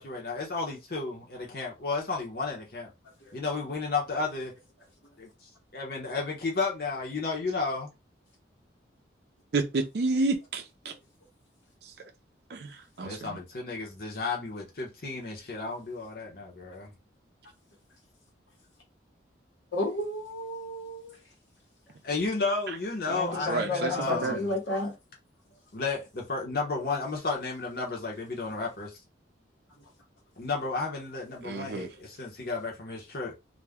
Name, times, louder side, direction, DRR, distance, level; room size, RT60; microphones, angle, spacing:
voice 1, 0.0-2.9 3.3-4.5 5.2-7.9 13.0-16.9 22.0-24.5 25.7-29.0 30.4-33.4, left 3 dB, 50° left, 0.8 m, -33 dB
voice 2, 9.5-10.9 12.5-13.4 23.5-24.4 31.4-31.9, right 3 dB, 55° right, 0.4 m, -30 dB
voice 3, 19.7-21.2 23.1-24.9, left 2 dB, 85° left, 1.2 m, -32 dB
2.5 x 2.1 x 3.4 m
head